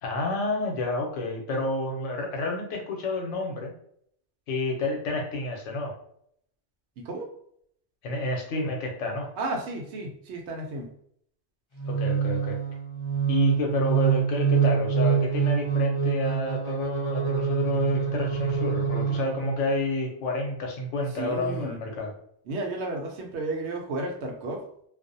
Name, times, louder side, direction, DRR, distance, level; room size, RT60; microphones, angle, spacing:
voice 1, 0.0-3.7 4.5-5.9 8.0-9.3 11.9-12.6 13.3-22.1, left 2 dB, 85° left, 1 dB, 1.0 m, -30 dB
voice 2, 9.4-10.9 21.2-21.8 22.5-24.6, right 2 dB, 70° right, 2 dB, 0.8 m, -33 dB
sound 1, 11.8-19.7, right 7 dB, 30° left, 0.6 m, -25 dB
2.4 x 2.0 x 2.6 m, 0.67 s
omnidirectional pair, 1.2 m